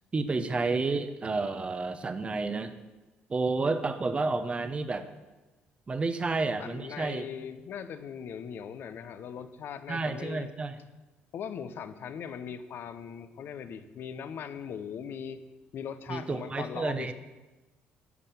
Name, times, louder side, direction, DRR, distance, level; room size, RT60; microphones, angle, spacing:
voice 1, 0.1-2.7 3.3-5.1 5.9-7.2 9.9-10.8 16.1-17.1, right 3 dB, 30° right, 10 dB, 0.8 m, -30 dB
voice 2, 6.2-10.5 11.3-15.4 15.7-17.1, left 7 dB, 65° left, 11 dB, 0.7 m, -40 dB
9.6 x 5.7 x 6.9 m, 1.1 s
cardioid pair, 85°, 4 cm